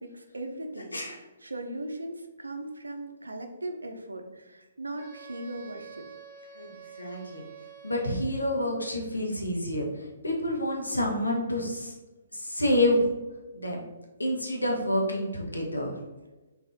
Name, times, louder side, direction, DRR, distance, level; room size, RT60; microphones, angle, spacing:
voice 1, 0.0-6.1, right 1 dB, 80° right, 5 dB, 0.5 m, -38 dB
Wind instrument woodwind instrument, 5.0-8.5, right 6 dB, 45° right, 1.0 m, -47 dB
voice 2, 7.0-7.4 7.8-9.9 10.2-11.9 12.3-13.1 13.5-13.8 14.2-15.9, left 1 dB, 85° left, -1 dB, 0.9 m, -28 dB
4.0 x 2.7 x 2.6 m, 1.1 s
figure-of-eight pair, 130°, 0 cm